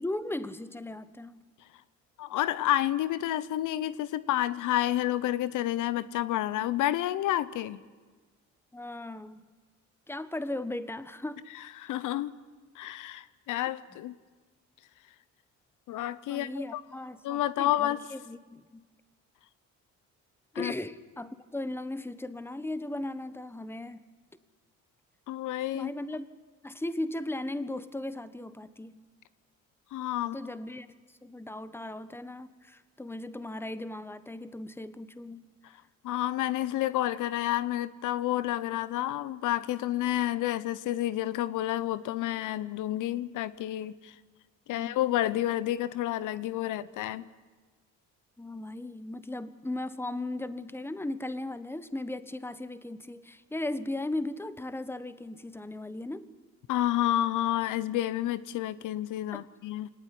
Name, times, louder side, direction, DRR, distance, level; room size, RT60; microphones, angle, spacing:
voice 1, 0.0-1.4 8.7-9.5 10.1-11.4 16.3-18.8 20.5-24.1 25.7-26.2 26.6-29.0 30.2-30.9 31.2-35.5 44.7-45.0 48.4-56.3 59.3-59.5, left 1 dB, 10° left, 13 dB, 1.3 m, -37 dB
voice 2, 2.2-7.8 11.8-12.3 12.7-14.2 15.9-16.8 17.2-18.0 20.5-20.7 25.3-25.9 29.9-30.4 36.0-44.1 44.7-47.3 56.7-59.9, left 13 dB, 85° left, 16 dB, 0.9 m, -30 dB
24.0 x 18.5 x 10.0 m, 1.4 s
cardioid pair, 90°, 30 cm